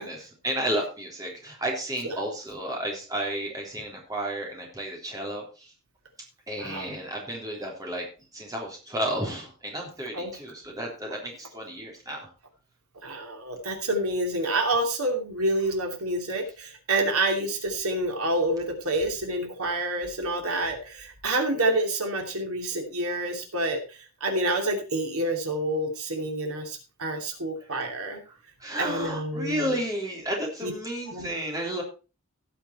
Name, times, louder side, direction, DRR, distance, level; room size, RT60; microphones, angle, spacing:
voice 1, 0.0-5.7 6.5-8.1 8.3-12.3 28.6-31.8, right 1 dB, 15° right, -1 dB, 3.3 m, -32 dB
voice 2, 6.6-6.9 10.1-10.4 13.0-23.8 24.2-28.2 28.8-29.7 30.6-30.7 31.1-31.3, right 1 dB, 90° right, 2 dB, 2.8 m, -28 dB
17.0 x 5.9 x 4.3 m, 0.32 s
head